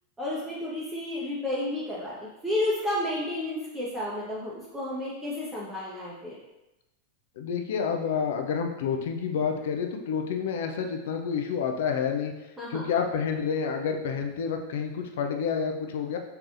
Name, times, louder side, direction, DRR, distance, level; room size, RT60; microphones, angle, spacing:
voice 1, 0.2-2.2 2.4-6.4 12.6-12.9, left 1 dB, 15° right, -6 dB, 0.8 m, -31 dB
voice 2, 7.4-12.3 12.7-16.2, left 6 dB, 55° left, 4 dB, 0.5 m, -29 dB
4.8 x 3.3 x 2.6 m, 0.97 s
figure-of-eight pair, 90°, 0 cm